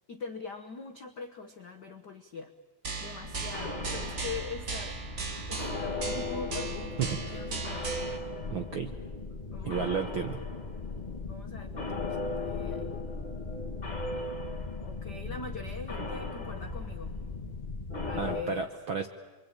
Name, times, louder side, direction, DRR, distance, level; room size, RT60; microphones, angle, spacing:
voice 1, 0.1-2.5 3.0-5.0 5.5-8.0 9.5-10.0 11.2-12.9 14.8-17.1 18.0-18.7, left 4 dB, 85° left, 6 dB, 0.9 m, -42 dB
sound 1, 2.8-8.2, right 4 dB, 45° right, 0.9 m, -37 dB
sound 2, 3.2-18.4, left 3 dB, 20° left, 1.4 m, -37 dB
voice 2, 7.0-7.4 8.5-8.9 9.6-10.4 18.2-19.1, right 7 dB, 70° right, 6 dB, 1.1 m, -32 dB
27.5 x 23.5 x 8.9 m, 1.2 s
omnidirectional pair, 3.7 m